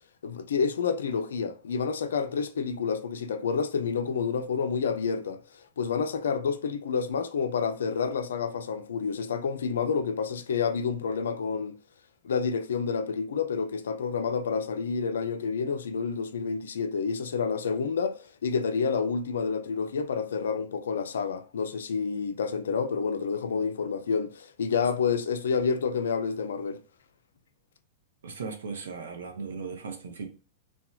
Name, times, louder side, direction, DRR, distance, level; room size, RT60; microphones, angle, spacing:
voice 1, 0.2-11.7 12.2-26.8, left 5 dB, 75° left, 0.3 m, -29 dB
voice 2, 28.2-30.3, right 5 dB, 75° right, 0.6 m, -37 dB
2.9 x 2.2 x 2.3 m
hypercardioid pair, 105°, 0 cm